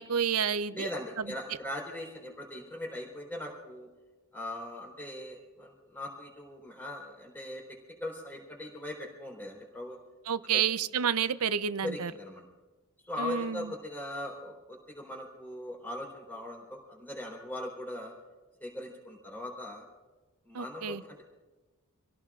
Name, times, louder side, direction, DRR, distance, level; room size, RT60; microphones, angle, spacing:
voice 1, 0.0-0.9 10.3-12.1 13.2-13.7 20.5-21.0, right 7 dB, 85° right, 13 dB, 0.7 m, -30 dB
voice 2, 0.7-3.9 4.3-10.0 10.5-10.6 11.8-12.4 13.0-18.1 18.6-19.9 20.4-21.2, left 1 dB, 10° left, -2 dB, 3.7 m, -40 dB
27.5 x 17.5 x 2.5 m, 1.2 s
head